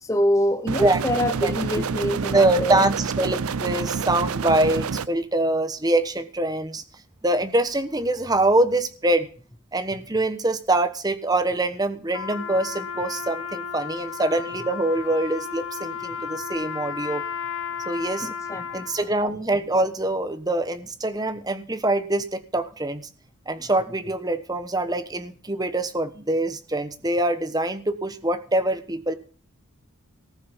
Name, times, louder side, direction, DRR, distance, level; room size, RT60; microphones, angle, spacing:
voice 1, 0.0-2.9 18.2-18.6, equal, 15° left, 0.7 m, -25 dB
sound 1, 0.7-5.1, right 5 dB, 85° right, 0.6 m, -28 dB
voice 2, 1.4-1.8 2.3-6.8 7.2-9.3 9.7-17.2 17.9-18.3 18.7-23.1 23.5-29.1, right 2 dB, 15° right, 1.2 m, -24 dB
Trumpet, 12.1-19.1, left 7 dB, 65° left, 2.8 m, -33 dB
19.0 x 6.4 x 7.2 m
head